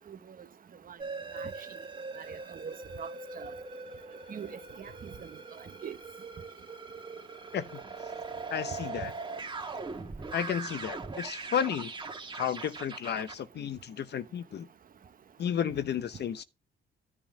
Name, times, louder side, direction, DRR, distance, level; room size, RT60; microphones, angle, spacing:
sound 1, 1.0-13.4, right 4 dB, 25° right, 1.9 m, -41 dB
voice 1, 2.2-3.1 3.3-3.5 4.3-4.5 4.8-5.3 5.8-6.0, right 7 dB, 45° right, 1.0 m, -42 dB
voice 2, 8.5-9.1 10.3-11.9 12.3-14.7 15.4-16.4, left 8 dB, 60° left, 0.8 m, -32 dB
10.5 x 3.7 x 6.4 m
cardioid pair, 90°, 20 cm